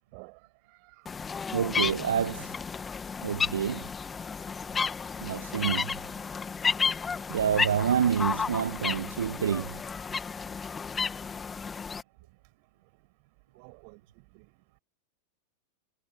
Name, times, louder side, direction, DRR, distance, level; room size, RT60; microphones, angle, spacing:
voice 1, 0.7-1.0 13.5-14.0 14.3-14.5, right 40 dB or more, 45° right, 5.5 m, -51 dB
sound 1, 1.1-12.0, left 5 dB, 15° left, 1.9 m, -32 dB
voice 2, 1.5-2.6 3.2-3.9 5.2-6.0 7.3-9.8, right 8 dB, 65° right, 0.8 m, -28 dB
figure-of-eight pair, 90°, 0 cm